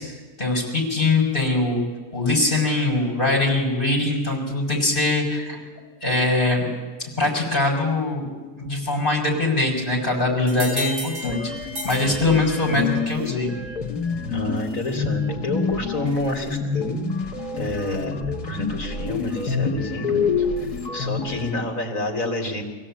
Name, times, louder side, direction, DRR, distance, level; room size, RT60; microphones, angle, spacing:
voice 1, 0.0-1.8 2.1-5.6 6.0-6.7 7.0-8.3 8.6-13.5, left 2 dB, 30° left, -1 dB, 6.0 m, -22 dB
sound 1, 10.5-13.0, left 1 dB, 80° right, 7.4 m, -34 dB
sound 2, 11.2-21.5, left 5 dB, 70° left, 2.2 m, -27 dB
voice 2, 14.3-17.0 17.5-22.6, left 1 dB, 55° left, 2 dB, 3.4 m, -29 dB
25.5 x 16.5 x 8.7 m, 1.3 s
omnidirectional pair, 1.7 m